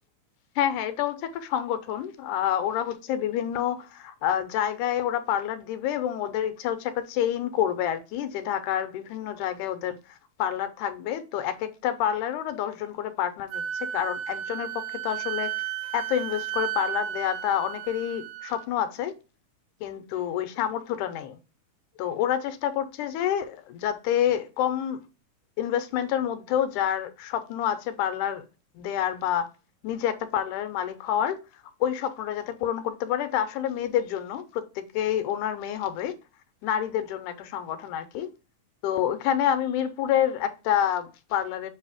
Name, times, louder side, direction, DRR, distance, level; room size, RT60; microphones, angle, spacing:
voice 1, 0.6-15.5 15.9-19.1 19.8-21.4 22.0-25.0 25.6-28.5 28.8-29.5 29.8-36.1 36.6-38.3 38.8-41.7, left 10 dB, 90° left, 2.2 m, -28 dB
Wind instrument woodwind instrument, 13.5-18.7, right 11 dB, 85° right, 2.1 m, -33 dB
7.5 x 2.7 x 4.9 m
omnidirectional pair, 3.5 m